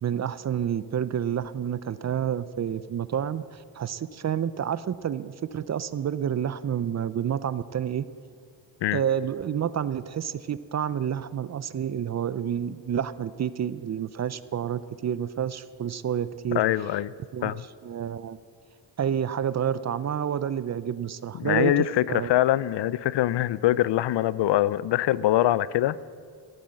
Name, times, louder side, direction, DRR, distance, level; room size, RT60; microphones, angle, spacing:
voice 1, 0.0-8.0 8.9-16.6 17.3-17.6 17.8-18.4 19.0-22.3, right 9 dB, 35° right, 0.5 m, -29 dB
voice 2, 16.5-17.1 17.4-17.6 21.4-26.0, left 13 dB, 65° left, 0.5 m, -23 dB
16.5 x 9.3 x 7.6 m
cardioid pair, 105°, 45 cm